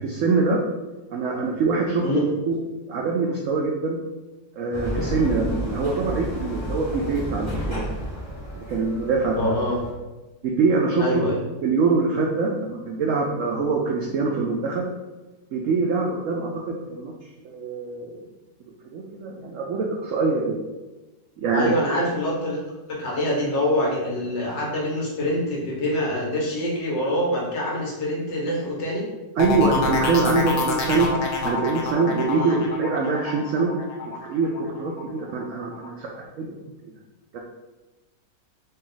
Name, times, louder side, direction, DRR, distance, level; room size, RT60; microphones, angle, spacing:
voice 1, 0.0-0.6 1.1-2.6 2.9-4.0 4.6-7.9 8.5-9.6 10.6-11.0 11.6-14.9 15.5-17.1 17.4-18.2 18.9-20.6 21.4-21.7 29.4-31.1 31.4-33.7 34.2-36.1 36.4-36.6 37.3-37.4, right 4 dB, 85° right, 0 dB, 0.6 m, -24 dB
sound 1, 4.7-9.9, equal, 20° left, 1.0 m, -31 dB
voice 2, 9.4-9.8 11.0-11.4 21.5-22.6 22.9-29.1 30.8-30.9 32.3-32.6, left 1 dB, 85° left, -4 dB, 1.8 m, -25 dB
sound 2, 29.4-35.0 35.4-35.9, left 3 dB, 60° left, 0.7 m, -27 dB
4.0 x 2.4 x 3.8 m, 1.1 s
omnidirectional pair, 1.9 m